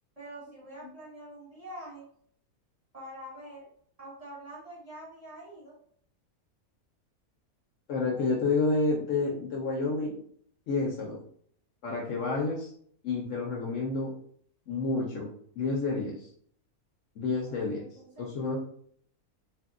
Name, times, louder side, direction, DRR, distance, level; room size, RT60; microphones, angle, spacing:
voice 1, 0.2-2.0 2.9-3.7 4.0-5.7 17.7-18.2, right 1 dB, 30° right, -7 dB, 1.0 m, -45 dB
voice 2, 7.9-10.1 10.7-11.2 11.8-12.7 13.0-14.1 14.7-15.3 15.6-16.3 17.2-17.8 18.2-18.6, left 3 dB, 65° left, -2 dB, 0.8 m, -29 dB
2.9 x 2.6 x 2.4 m, 0.63 s
omnidirectional pair, 1.6 m